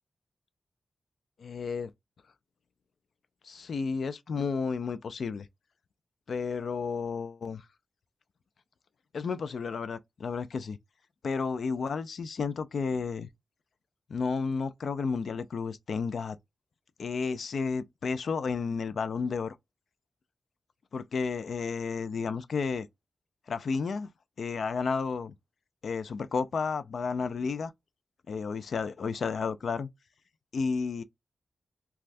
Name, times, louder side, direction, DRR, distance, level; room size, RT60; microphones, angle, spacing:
voice 1, 1.4-1.9 3.4-5.5 6.3-7.6 9.1-10.8 11.2-13.3 14.1-16.4 17.0-19.6 20.9-22.9 23.5-24.1 24.4-25.3 25.8-27.7 28.3-29.9 30.5-31.0, left 5 dB, 70° left, 0.4 m, -32 dB
2.5 x 2.3 x 3.2 m
wide cardioid pair, 135°, 0 cm